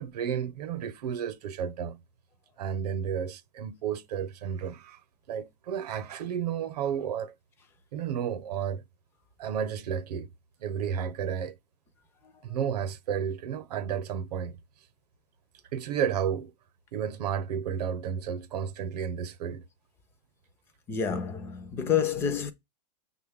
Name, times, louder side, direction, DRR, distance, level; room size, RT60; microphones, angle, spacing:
voice 1, 0.0-2.0 2.6-5.0 5.3-7.3 7.9-8.8 9.4-10.3 10.6-11.6 12.4-14.6 15.7-16.5 16.9-19.6, right 8 dB, 70° right, 0.7 m, -32 dB
voice 2, 20.9-22.5, left 7 dB, 10° left, 0.3 m, -28 dB
6.2 x 2.2 x 3.5 m
supercardioid pair, 155°, 21 cm